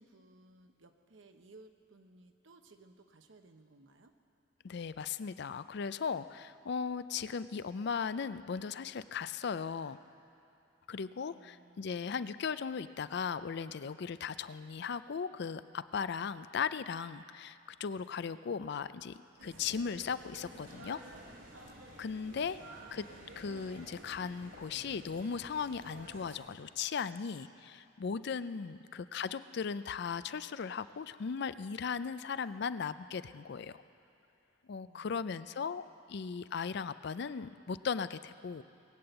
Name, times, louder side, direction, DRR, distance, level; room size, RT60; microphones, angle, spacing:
voice 1, 0.0-4.1 11.3-12.0 22.5-22.7 34.8-35.5, right 2 dB, 70° right, 6 dB, 1.0 m, -60 dB
voice 2, 4.6-10.0 10.9-21.0 22.0-22.6 22.9-23.0 23.4-33.8 34.7-35.8 36.1-38.6, left 6 dB, 60° left, 14 dB, 0.4 m, -37 dB
sound 1, 19.4-26.4, right 1 dB, 90° right, 3.0 m, -52 dB
20.5 x 8.7 x 8.0 m, 2.7 s
head